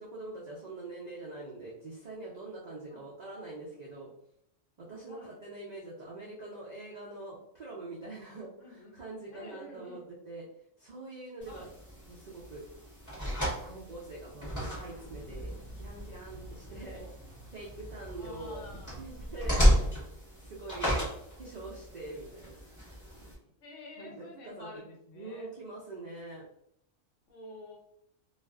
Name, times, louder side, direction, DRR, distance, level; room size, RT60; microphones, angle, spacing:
voice 1, 0.0-4.1 4.8-10.4 10.8-11.7 12.1-12.7 13.6-17.0 17.5-18.7 19.0-19.7 20.4-21.0 21.4-22.6 23.2-23.3 24.0-24.7 25.1-26.4, right 2 dB, 90° right, -4 dB, 0.3 m, -44 dB
voice 2, 5.1-5.4 8.6-9.0 9.3-10.1 11.5-11.7 16.6-17.2 18.2-19.1 23.6-25.5 27.3-27.8, left 2 dB, 70° left, 1 dB, 1.0 m, -49 dB
sound 1, 11.4-23.3, equal, 15° left, 1.0 m, -33 dB
2.4 x 2.4 x 2.3 m, 0.73 s
omnidirectional pair, 1.4 m